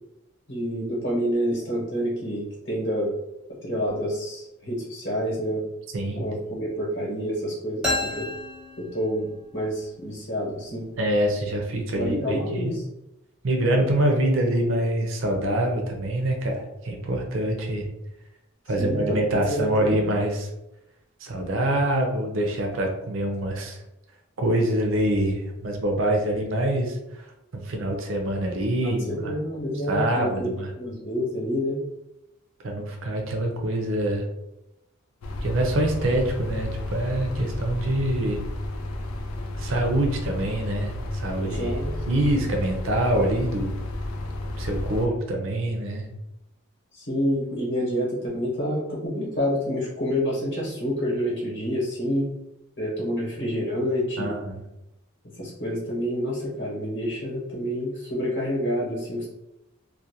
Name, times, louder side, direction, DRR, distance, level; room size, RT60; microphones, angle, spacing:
voice 1, 0.5-3.1 3.6-5.6 6.1-8.3 8.8-9.3 9.5-10.9 11.9-12.8 18.8-19.2 19.5-20.1 28.8-31.8 41.4-41.9 46.9-52.3 52.8-54.3 55.4-59.3, equal, 55° left, -6 dB, 0.8 m, -28 dB
voice 2, 5.9-6.3 11.0-12.7 13.4-17.9 18.7-20.5 21.2-23.8 24.4-27.3 27.5-29.4 29.9-30.7 32.6-34.3 35.4-38.4 39.6-41.8 42.1-43.7 44.6-46.1 54.2-54.6, right 1 dB, 65° right, 2 dB, 0.5 m, -25 dB
sound 1, 7.8-9.5, left 1 dB, 5° right, 0.4 m, -30 dB
sound 2, 35.2-45.1, left 1 dB, 80° left, 0.4 m, -32 dB
2.4 x 2.1 x 2.7 m, 0.89 s
head